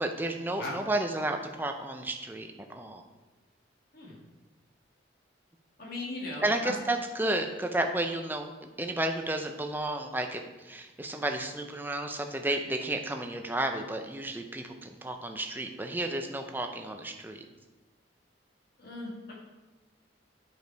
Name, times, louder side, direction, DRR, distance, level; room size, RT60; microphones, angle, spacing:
voice 1, 0.0-3.0 6.4-17.5, right 1 dB, 10° right, 4 dB, 0.6 m, -32 dB
voice 2, 5.8-6.7 18.8-19.3, left 2 dB, 50° left, -3 dB, 1.8 m, -38 dB
8.0 x 5.0 x 4.5 m, 1.2 s
head